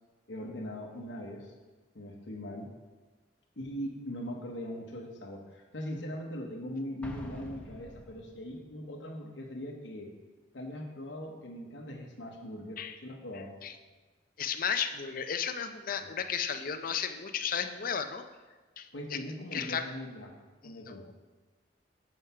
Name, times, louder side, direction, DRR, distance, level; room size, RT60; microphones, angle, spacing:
voice 1, 0.3-1.5 1.9-2.7 3.6-10.1 10.5-13.5 16.0-16.1 18.9-20.3 20.6-21.0, left 1 dB, 90° left, 0 dB, 1.0 m, -40 dB
Explosion, 7.0-8.7, equal, 5° left, 0.7 m, -46 dB
voice 2, 14.4-18.2 18.8-19.2 19.5-19.8 20.6-21.1, left 7 dB, 50° left, 9 dB, 0.5 m, -34 dB
7.7 x 4.8 x 5.6 m, 1.3 s
head